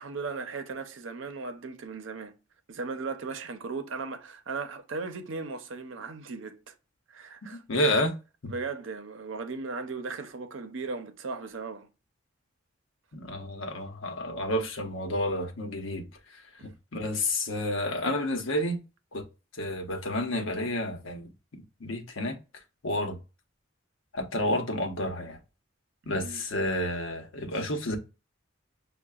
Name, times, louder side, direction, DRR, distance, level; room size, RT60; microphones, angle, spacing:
voice 1, 0.0-2.3 2.7-6.7 7.1-7.6 8.5-11.9 26.0-26.4, right 4 dB, 75° right, 0.6 m, -37 dB
voice 2, 7.5-8.2 8.4-8.5 13.1-16.1 16.3-16.4 16.9-18.8 19.1-19.2 19.5-22.4 22.8-23.2 24.1-25.4 26.1-28.0, left 1 dB, 80° left, 0.8 m, -30 dB
6.4 x 2.2 x 2.3 m
head